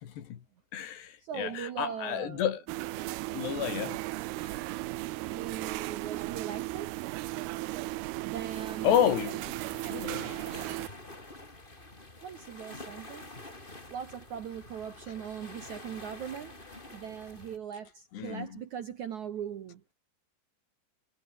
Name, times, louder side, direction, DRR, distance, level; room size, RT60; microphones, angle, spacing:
voice 1, 0.0-0.4 0.7-2.6 3.3-4.0 4.4-4.6 8.8-9.6 9.8-10.7 18.1-18.5, left 9 dB, 70° left, 4.4 m, -31 dB
voice 2, 1.2-2.5 5.3-7.0 8.2-9.0 12.2-13.3 13.9-19.8, right 8 dB, 60° right, 2.1 m, -40 dB
sound 1, 2.7-10.9, right 19 dB, 80° right, 2.5 m, -36 dB
sound 2, 8.5-17.6, left 2 dB, 10° left, 3.3 m, -48 dB
omnidirectional pair, 5.1 m